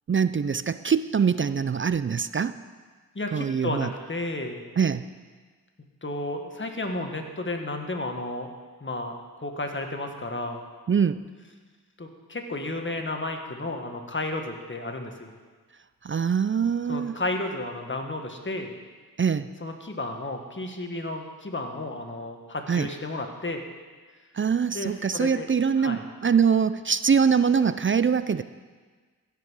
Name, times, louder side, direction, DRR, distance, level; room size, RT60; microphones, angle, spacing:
voice 1, 0.1-2.6 3.3-3.9 4.8-5.0 10.9-11.2 16.0-17.2 19.2-19.5 22.7-22.9 24.3-28.4, right 6 dB, 30° right, 14 dB, 0.4 m, -23 dB
voice 2, 3.1-4.6 6.0-8.5 8.8-10.6 12.0-15.3 16.9-18.7 19.6-23.6 24.7-25.5 25.8-26.0, left 2 dB, 30° left, 3 dB, 1.7 m, -32 dB
15.5 x 5.7 x 6.4 m, 1.4 s
cardioid pair, 45°, 39 cm